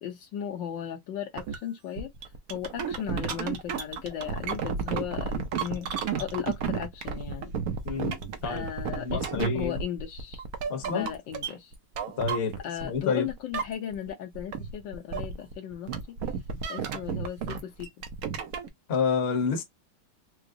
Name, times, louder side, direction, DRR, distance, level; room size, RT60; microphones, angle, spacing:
voice 1, 0.0-2.1 2.5-7.5 8.5-10.4 10.9-11.7 12.6-16.2 16.7-17.9, left 9 dB, 70° left, 1.5 m, -36 dB
sound 1, 1.4-1.6 2.0-13.0 13.3-14.1 14.3-18.7, right 6 dB, 65° right, 0.9 m, -32 dB
voice 2, 7.8-8.2 8.4-9.8 10.7-11.1 12.2-12.6 12.8-13.3 18.9-19.6, left 6 dB, 40° left, 1.0 m, -29 dB
4.7 x 2.1 x 2.6 m
omnidirectional pair, 2.2 m